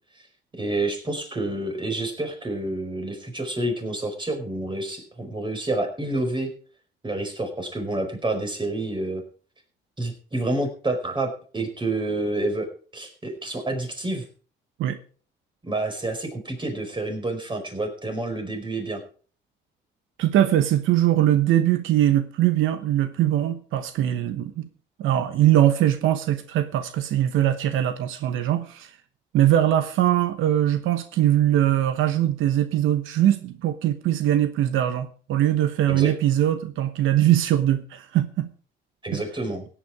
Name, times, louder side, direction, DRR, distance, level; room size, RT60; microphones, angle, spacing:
voice 1, 0.5-6.5 7.0-9.2 10.0-12.7 12.9-14.2 15.6-19.0 35.9-36.1 39.0-39.7, right 2 dB, 25° right, 4 dB, 4.9 m, -28 dB
voice 2, 20.2-24.7 25.0-28.9 29.3-38.5, right 12 dB, 85° right, 10 dB, 1.1 m, -21 dB
16.5 x 9.3 x 4.8 m, 0.42 s
cardioid pair, 90°, 20 cm